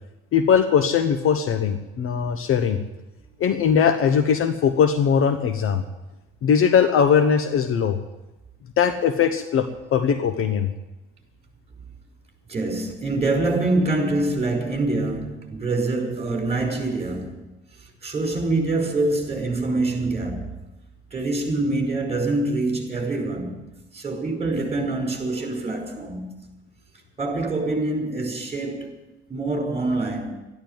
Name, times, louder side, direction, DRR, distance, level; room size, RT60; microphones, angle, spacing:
voice 1, 0.3-2.8 3.4-5.8 6.4-8.0 8.8-10.7, left 7 dB, 40° left, 1.2 m, -20 dB
voice 2, 12.5-17.5 17.8-20.5 21.1-23.7 23.9-26.3 27.2-29.0 29.3-30.3, right 2 dB, 20° right, 5.3 m, -25 dB
13.0 x 11.5 x 9.0 m
figure-of-eight pair, 70°, 33 cm